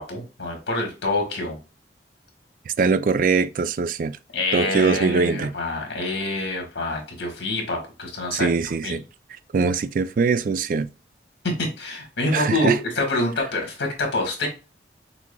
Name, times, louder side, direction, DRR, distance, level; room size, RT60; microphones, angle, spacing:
voice 1, 0.0-1.6 4.3-8.5 8.8-9.0 11.4-14.5, left 2 dB, 85° left, 1.6 m, -26 dB
voice 2, 2.7-4.2 4.5-5.5 8.3-9.0 9.5-10.9 12.3-12.8, right 5 dB, 50° right, 0.3 m, -22 dB
5.9 x 2.9 x 2.2 m
head